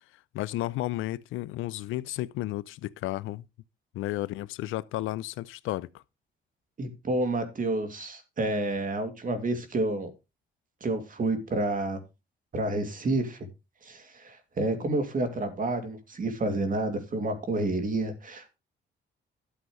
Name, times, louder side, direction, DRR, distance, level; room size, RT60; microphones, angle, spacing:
voice 1, 0.3-3.4 3.9-6.0, left 16 dB, 90° left, 0.6 m, -33 dB
voice 2, 6.8-10.1 10.8-12.0 12.5-13.5 13.8-18.6, right 2 dB, 45° right, 2.8 m, -29 dB
12.5 x 7.8 x 3.2 m
cardioid pair, 90°, 20 cm